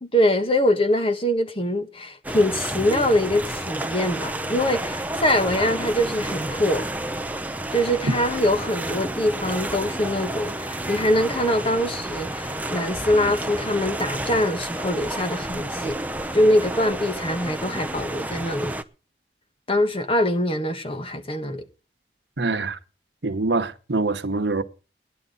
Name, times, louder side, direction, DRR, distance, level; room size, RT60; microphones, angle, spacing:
voice 1, 0.0-6.8 7.7-16.0 16.3-18.7 19.7-21.6, left 1 dB, 30° left, 1.5 m, -23 dB
sound 1, 2.2-18.8, right 1 dB, 10° right, 0.7 m, -30 dB
voice 2, 22.4-22.8 23.2-24.6, right 3 dB, 70° right, 1.2 m, -24 dB
17.5 x 11.0 x 4.0 m
head